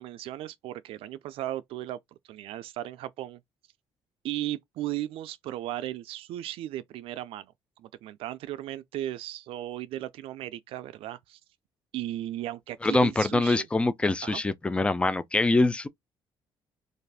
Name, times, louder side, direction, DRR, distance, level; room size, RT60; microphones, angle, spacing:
voice 1, 0.0-3.4 4.2-11.4 11.9-13.7 14.2-14.4, right 14 dB, 80° right, 0.4 m, -36 dB
voice 2, 12.8-15.9, left 2 dB, 10° left, 0.3 m, -24 dB
2.5 x 2.4 x 3.3 m
cardioid pair, 120°, 9 cm